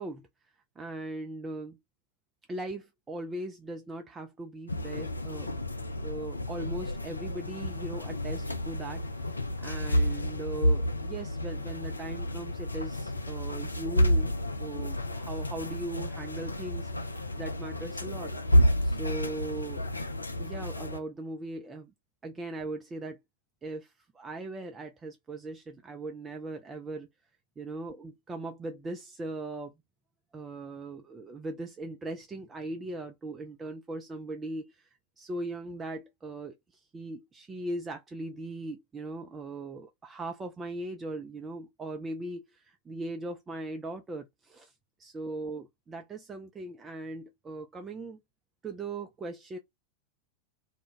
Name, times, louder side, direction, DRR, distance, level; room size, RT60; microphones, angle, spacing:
voice 1, 0.0-1.8 2.5-5.5 6.0-14.3 14.6-18.3 18.8-19.9 20.4-21.9 22.2-23.2 23.6-27.1 27.6-29.7 30.3-44.7 45.0-48.2 48.6-49.6, right 2 dB, 20° right, 0.3 m, -39 dB
sound 1, 4.7-21.0, equal, 80° left, 0.3 m, -30 dB
2.2 x 2.0 x 3.0 m
figure-of-eight pair, 90°, 0 cm